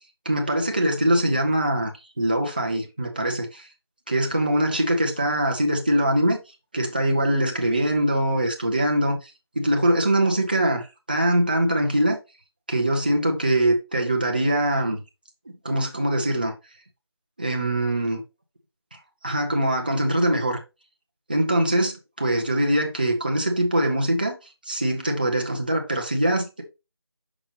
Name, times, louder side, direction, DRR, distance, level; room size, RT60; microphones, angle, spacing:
voice 1, 0.3-3.7 4.1-6.4 6.7-9.3 9.6-12.2 12.7-15.0 15.6-16.5 17.4-18.2 19.2-20.6 21.3-24.3 24.7-26.6, right 1 dB, 20° right, 0.8 m, -23 dB
6.0 x 5.2 x 3.1 m
figure-of-eight pair, 175°, 14 cm